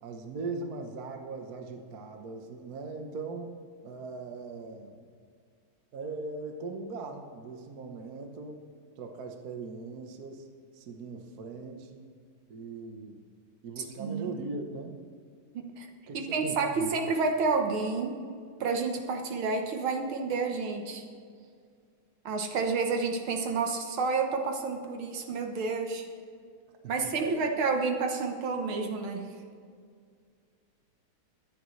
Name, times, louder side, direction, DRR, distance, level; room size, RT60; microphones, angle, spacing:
voice 1, 0.0-3.5 3.8-5.0 5.9-8.6 9.0-10.5 10.7-12.1 12.5-13.2 13.6-15.0 16.1-16.9 27.2-27.5, right 3 dB, 50° right, 4 dB, 1.4 m, -39 dB
voice 2, 13.8-14.3 15.5-15.9 16.1-18.2 18.6-21.0 22.3-26.1 26.8-29.3, right 4 dB, 75° right, 4 dB, 2.0 m, -30 dB
23.0 x 9.1 x 3.2 m, 2.1 s
omnidirectional pair, 2.3 m